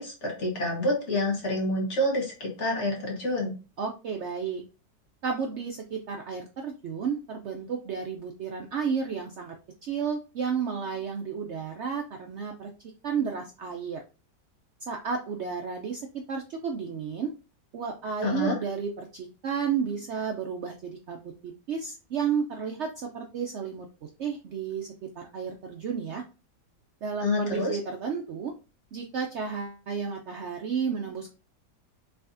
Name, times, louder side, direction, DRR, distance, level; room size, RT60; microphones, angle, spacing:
voice 1, 0.0-3.5 18.2-18.5 27.2-27.8, left 1 dB, 45° left, -1 dB, 1.6 m, -28 dB
voice 2, 3.8-4.6 5.2-9.5 9.8-12.7 13.0-14.0 14.9-17.3 17.7-26.2 27.0-28.5 28.9-31.3, right 6 dB, 90° right, 3 dB, 0.6 m, -32 dB
4.7 x 3.4 x 2.5 m, 0.32 s
omnidirectional pair, 1.8 m